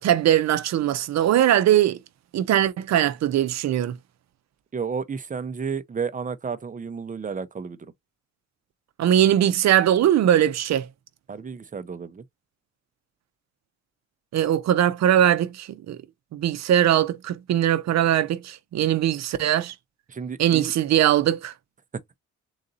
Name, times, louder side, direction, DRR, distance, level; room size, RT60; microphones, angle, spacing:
voice 1, 0.0-2.0 2.3-3.9 9.0-10.8 14.3-16.0 16.3-19.7 20.4-21.5, right 11 dB, 65° right, 0.6 m, -21 dB
voice 2, 4.7-7.9 11.3-12.2 20.1-20.7, right 6 dB, 25° right, 0.7 m, -32 dB
3.9 x 2.5 x 4.0 m
cardioid pair, 90°, 30 cm